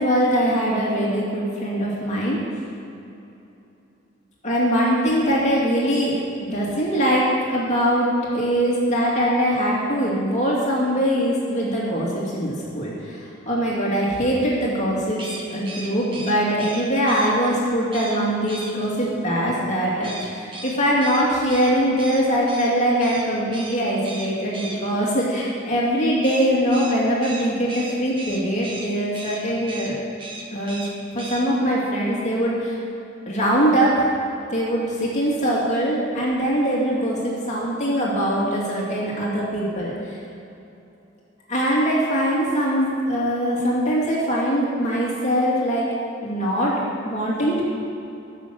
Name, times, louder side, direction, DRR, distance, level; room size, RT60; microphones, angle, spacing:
voice 1, 0.0-2.4 4.4-6.2 6.5-15.2 15.5-30.0 30.5-30.8 31.1-32.8 33.3-34.1 34.5-40.2 41.5-45.9 46.2-47.6, equal, 40° left, -5 dB, 2.5 m, -22 dB
sound 1, 15.1-17.3 17.9-18.2 18.5-18.7 20.0-22.7 23.0-23.2 23.5-23.8 24.0-24.8 26.2-28.9 29.1-29.4 29.7-29.9 30.2-30.9 31.2-31.4, right 2 dB, 25° right, 1.7 m, -36 dB
15.0 x 6.5 x 7.7 m, 2.8 s
head